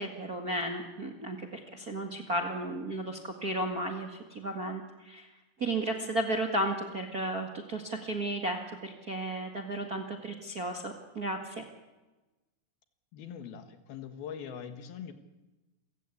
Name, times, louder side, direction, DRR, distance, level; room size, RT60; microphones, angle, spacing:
voice 1, 0.0-5.3 5.6-11.6, right 1 dB, 35° right, 3 dB, 1.5 m, -34 dB
voice 2, 13.1-15.1, left 8 dB, 75° left, 8 dB, 3.4 m, -42 dB
28.5 x 16.0 x 8.5 m, 1.1 s
omnidirectional pair, 4.4 m